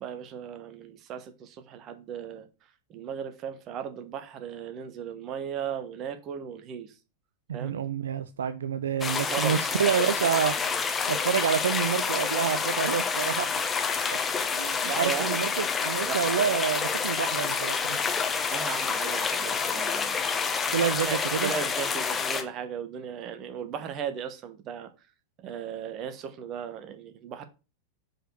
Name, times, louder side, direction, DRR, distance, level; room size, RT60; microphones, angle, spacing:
voice 1, 0.0-2.5 2.9-6.9 7.5-7.7 9.3-9.6 14.8-15.4 16.0-16.2 18.5-20.3 21.0-24.9 25.4-27.5, right 8 dB, 35° right, 1.2 m, -36 dB
voice 2, 7.5-13.8 14.1-14.2 14.6-18.0 20.7-21.5, right 8 dB, 65° right, 0.4 m, -28 dB
sound 1, 9.0-22.4, left 5 dB, 20° left, 1.3 m, -28 dB
5.0 x 4.4 x 6.0 m
figure-of-eight pair, 90°, 0 cm